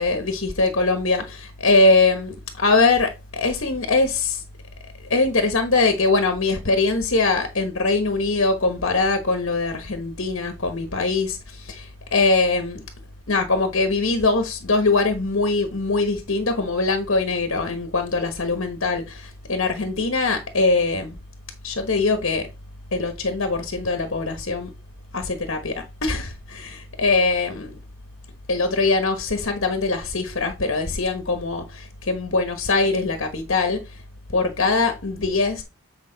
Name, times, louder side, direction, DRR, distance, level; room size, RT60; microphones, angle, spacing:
voice 1, 0.0-4.4 5.1-12.8 13.3-21.1 21.6-22.5 22.9-24.7 25.1-27.7 28.5-33.8 34.3-35.6, left 3 dB, 60° left, 1.1 m, -22 dB
8.6 x 5.1 x 3.9 m
head